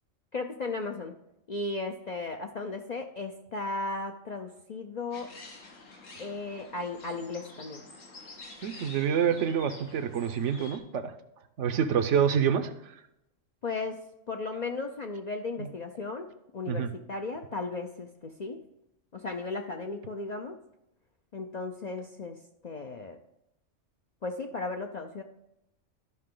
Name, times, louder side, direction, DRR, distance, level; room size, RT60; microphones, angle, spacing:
voice 1, 0.3-1.1 1.5-5.3 6.2-7.8 13.6-18.6 19.1-20.6 21.3-22.4 22.6-23.2 24.2-25.2, left 3 dB, 50° left, 4 dB, 0.5 m, -35 dB
sound 1, 5.1-10.8, left 3 dB, 85° left, 1.8 m, -48 dB
voice 2, 8.6-11.1 11.6-12.7 15.6-15.7 16.7-16.9, right 8 dB, 70° right, 9 dB, 1.0 m, -27 dB
12.5 x 5.7 x 3.8 m, 0.84 s
omnidirectional pair, 1.3 m